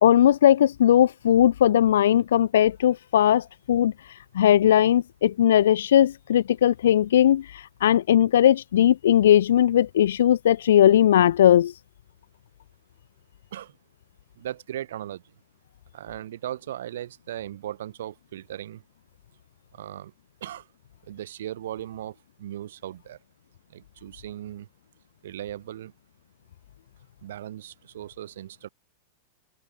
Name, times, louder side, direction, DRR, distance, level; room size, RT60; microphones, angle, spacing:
voice 1, 0.0-3.9 4.3-7.5 7.8-11.7, left 11 dB, 85° left, 1.0 m, -19 dB
voice 2, 14.4-15.2 15.9-18.8 19.7-20.1 20.4-20.6 21.1-23.2 23.7-24.7 25.2-25.9 27.2-28.7, right 12 dB, 80° right, 7.3 m, -37 dB
supercardioid pair, 145°, 0 cm